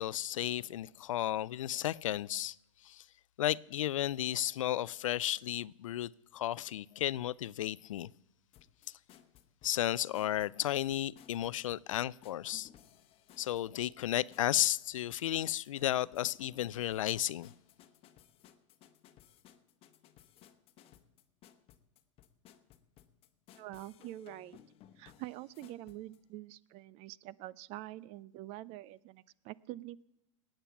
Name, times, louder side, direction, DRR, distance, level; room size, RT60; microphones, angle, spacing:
voice 1, 0.0-2.6 2.8-3.0 3.4-8.1 9.6-12.7 13.4-17.5, left 12 dB, 80° left, 0.4 m, -33 dB
sound 1, 8.5-26.2, left 10 dB, 35° left, 1.1 m, -61 dB
voice 2, 23.5-24.6 25.0-30.0, right 16 dB, 40° right, 0.5 m, -46 dB
19.0 x 8.9 x 5.8 m
hypercardioid pair, 120°, 17 cm